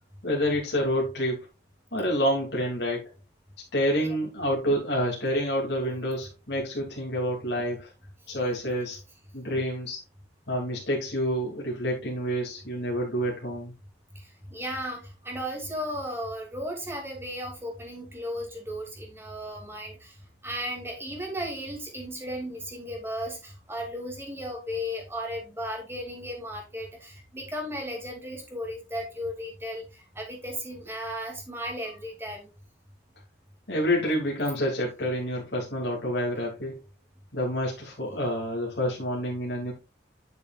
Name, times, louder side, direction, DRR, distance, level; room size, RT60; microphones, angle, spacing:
voice 1, 0.2-1.5 1.9-3.1 3.7-7.9 8.3-9.0 9.3-10.0 10.5-13.7 31.8-31.9 33.7-36.8 37.3-39.7, equal, 65° left, -3 dB, 2.8 m, -28 dB
voice 2, 14.1-20.2 20.4-32.5, equal, 15° right, 0 dB, 2.7 m, -35 dB
10.5 x 6.9 x 2.5 m, 0.27 s
head